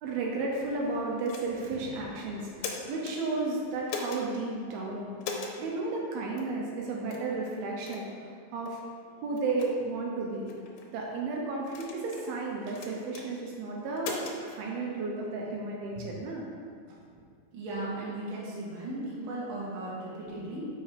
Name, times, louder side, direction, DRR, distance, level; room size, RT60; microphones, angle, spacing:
voice 1, 0.0-5.1 5.6-8.8 9.2-10.5 10.9-16.5, right 3 dB, 80° right, -2 dB, 2.7 m, -33 dB
sound 1, 1.3-1.7 2.4-3.2 3.9-4.2 5.2-5.6 6.4-6.5 7.1-7.3 7.9-8.1 8.7-8.8 9.4-9.7 10.5-10.9 11.7-12.3 12.8-13.3 14.0-14.4, left 5 dB, 80° left, 2.7 m, -38 dB
voice 2, 17.5-20.7, right 2 dB, 45° right, -7 dB, 1.8 m, -36 dB
6.1 x 5.6 x 5.1 m, 2.2 s
omnidirectional pair, 4.4 m